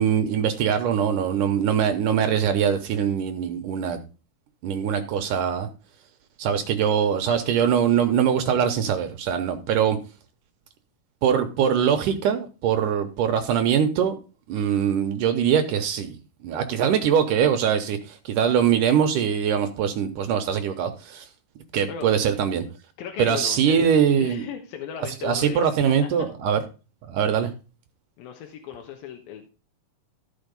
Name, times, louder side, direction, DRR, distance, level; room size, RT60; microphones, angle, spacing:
voice 1, 0.0-4.0 4.6-5.7 6.4-10.0 11.2-14.2 14.5-16.2 16.4-21.3 21.7-22.6 23.2-24.5 25.2-26.6 27.1-27.5, right 8 dB, 70° right, 7 dB, 2.2 m, -22 dB
voice 2, 23.0-23.9 24.2-25.7 28.2-29.5, left 8 dB, 75° left, 3 dB, 2.9 m, -37 dB
14.0 x 5.1 x 5.1 m, 0.33 s
omnidirectional pair, 4.3 m